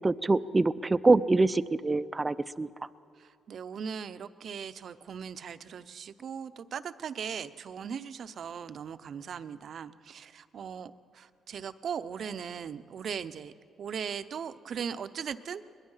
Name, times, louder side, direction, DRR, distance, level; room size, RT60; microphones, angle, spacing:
voice 1, 0.0-2.7, right 3 dB, 20° right, 15 dB, 0.5 m, -25 dB
voice 2, 3.2-13.5 13.8-15.6, right 7 dB, 60° right, 12 dB, 0.7 m, -39 dB
21.5 x 21.0 x 5.7 m, 2.4 s
cardioid pair, 90°, 0 cm